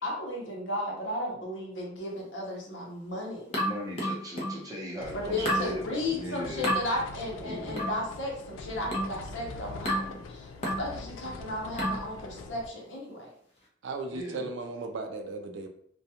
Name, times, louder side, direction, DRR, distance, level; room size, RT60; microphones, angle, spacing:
voice 1, 0.0-3.6 5.1-10.5 10.8-13.3, left 1 dB, 70° left, -2 dB, 0.8 m, -34 dB
sound 1, 3.5-4.6 5.4-5.7 6.6-6.8 7.8-8.0 8.9-9.2 9.8-10.1 10.6-10.9 11.8-12.1, equal, 35° left, 0.6 m, -30 dB
voice 2, 3.6-6.7 7.4-7.9 14.1-14.5, left 1 dB, 20° right, -4 dB, 0.7 m, -38 dB
sound 2, 5.0-12.7, left 3 dB, 90° left, 0.3 m, -44 dB
voice 3, 13.8-15.7, right 3 dB, 70° right, 5 dB, 0.4 m, -36 dB
2.3 x 2.2 x 2.8 m, 0.64 s
head